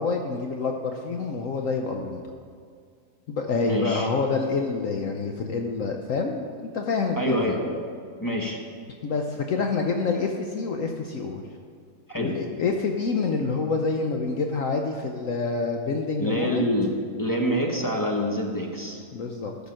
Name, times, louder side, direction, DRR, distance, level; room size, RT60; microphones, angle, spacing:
voice 1, 0.0-2.2 3.3-6.4 6.7-7.5 9.0-11.4 12.2-16.7 19.1-19.5, left 4 dB, 60° left, 3 dB, 1.0 m, -27 dB
voice 2, 3.6-4.1 7.2-7.9 8.2-8.6 12.1-12.3 16.2-16.9 17.2-19.0, equal, 15° left, 0 dB, 0.9 m, -26 dB
13.5 x 5.3 x 6.3 m, 2.3 s
omnidirectional pair, 1.7 m